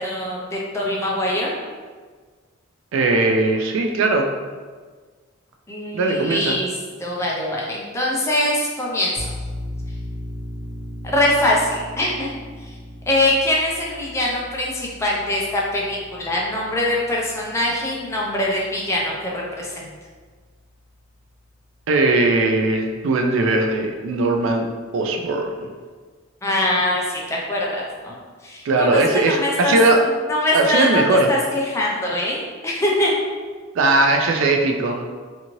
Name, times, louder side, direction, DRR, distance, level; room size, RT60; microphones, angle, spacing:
voice 1, 0.0-1.5 5.7-9.3 11.0-12.3 12.6-12.8 13.1-19.9 26.4-28.2 28.4-29.8 30.0-33.1, left 1 dB, 15° left, -3 dB, 0.5 m, -23 dB
voice 2, 2.9-4.3 5.9-6.6 21.9-24.7 24.9-25.7 28.7-30.0 30.5-31.3 33.8-35.1, right 2 dB, 65° right, 3 dB, 0.3 m, -19 dB
sound 1, 9.2-20.5, left 1 dB, 80° left, 0.6 m, -37 dB
2.7 x 2.6 x 2.9 m, 1.5 s
head